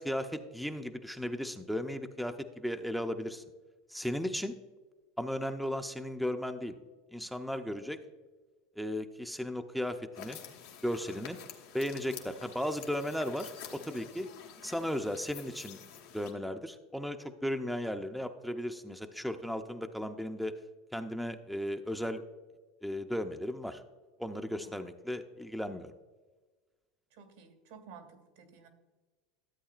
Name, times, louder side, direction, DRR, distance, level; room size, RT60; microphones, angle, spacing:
voice 1, 0.0-3.4 3.9-4.5 5.2-6.7 7.1-8.0 8.8-10.4 10.8-11.4 11.7-14.3 14.6-15.8 16.1-20.5 20.9-22.2 22.8-23.8 24.2-25.9, equal, ahead, 6 dB, 0.5 m, -35 dB
sound 1, 10.1-16.3, left 8 dB, 80° left, 1.3 m, -49 dB
voice 2, 27.1-28.7, right 6 dB, 85° right, 6 dB, 1.8 m, -53 dB
13.0 x 8.1 x 2.4 m, 1.3 s
supercardioid pair, 100°, 0 cm